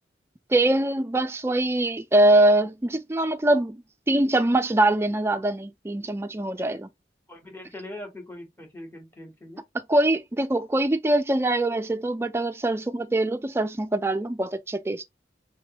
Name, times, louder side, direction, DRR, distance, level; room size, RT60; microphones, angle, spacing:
voice 1, 0.5-3.8 4.1-6.9 9.9-15.0, right 1 dB, 15° right, 0.3 m, -23 dB
voice 2, 7.3-9.6, left 1 dB, 10° left, 1.1 m, -41 dB
3.7 x 3.1 x 2.8 m
head